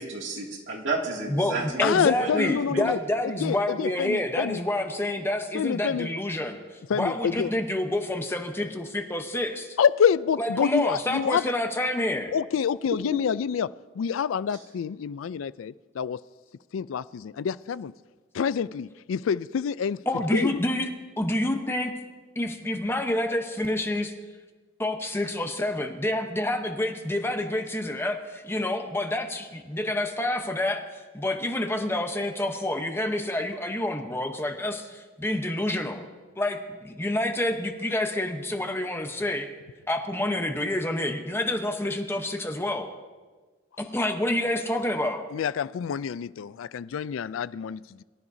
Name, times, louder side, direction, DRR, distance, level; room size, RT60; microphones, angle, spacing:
voice 1, 0.0-2.8, right 3 dB, 70° right, 2.4 m, -32 dB
voice 2, 1.3-6.6 7.0-9.8 10.4-12.3 20.1-20.9 21.2-21.9 22.4-24.1 24.8-36.1 36.4-39.5 39.9-42.9 43.8-45.2, left 1 dB, 10° left, 0.9 m, -28 dB
voice 3, 1.8-3.0 3.2-4.6 5.5-6.1 6.9-7.5 9.8-11.5 12.3-16.2 16.7-17.9 18.3-20.0 20.3-20.6 45.3-48.0, left 7 dB, 85° left, 0.4 m, -27 dB
23.0 x 13.0 x 2.7 m
head